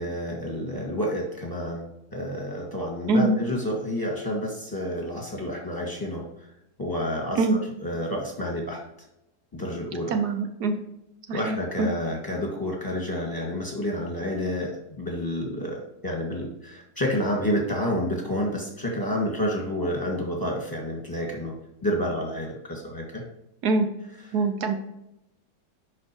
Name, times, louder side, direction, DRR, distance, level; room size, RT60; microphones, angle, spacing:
voice 1, 0.0-6.5 6.8-8.8 9.5-10.2 11.3-21.5 21.8-23.2, equal, 15° left, -2 dB, 1.7 m, -29 dB
voice 2, 10.1-10.7 11.3-11.9 23.6-23.9 24.3-24.8, right 3 dB, 75° right, 6 dB, 1.3 m, -23 dB
11.0 x 4.3 x 3.0 m, 0.86 s
omnidirectional pair, 1.8 m